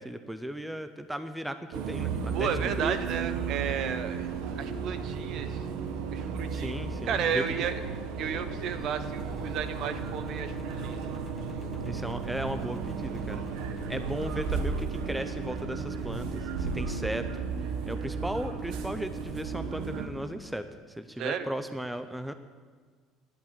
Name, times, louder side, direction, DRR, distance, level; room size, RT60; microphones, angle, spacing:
voice 1, 0.0-3.0 6.5-7.4 11.8-13.4 13.9-17.4 17.9-22.3, equal, 5° right, 10 dB, 0.5 m, -36 dB
sound 1, 1.7-20.1, right 5 dB, 80° right, 1.1 m, -34 dB
voice 2, 2.3-5.7 6.1-6.7 7.0-7.8 8.2-11.0 21.2-21.5, right 8 dB, 55° right, 11 dB, 0.8 m, -33 dB
Engine, 8.7-20.3, left 3 dB, 20° left, 0.9 m, -47 dB
10.5 x 8.5 x 8.6 m, 1.5 s
cardioid pair, 140°, 0 cm